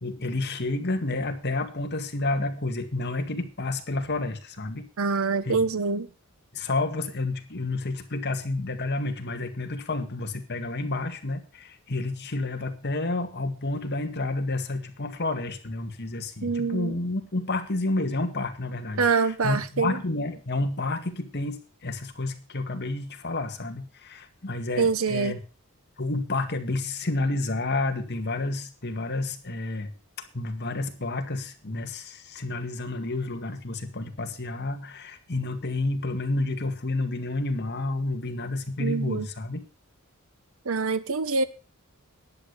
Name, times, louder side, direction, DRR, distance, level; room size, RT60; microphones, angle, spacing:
voice 1, 0.0-4.9 5.4-5.6 6.5-25.4 26.0-29.9 30.3-39.6, left 2 dB, 50° left, 2.0 m, -30 dB
voice 2, 5.0-6.1 16.4-16.9 19.0-20.0 24.8-25.3 38.8-39.3 40.7-41.4, right 4 dB, 70° right, 1.0 m, -25 dB
11.0 x 8.6 x 6.6 m
head